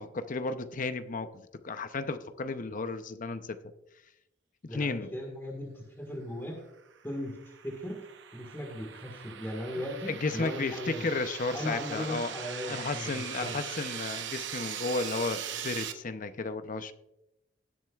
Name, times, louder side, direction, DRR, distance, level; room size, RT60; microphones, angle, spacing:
voice 1, 0.0-3.6 4.6-5.1 10.1-12.3 12.7-16.9, left 3 dB, 45° left, 10 dB, 0.7 m, -33 dB
voice 2, 4.7-6.6 7.0-7.4 7.6-8.0 8.3-11.0 11.5-13.6, equal, 10° left, 1 dB, 1.6 m, -38 dB
sound 1, 7.0-15.9, right 9 dB, 70° right, 0.8 m, -40 dB
18.0 x 7.7 x 2.4 m, 0.88 s
head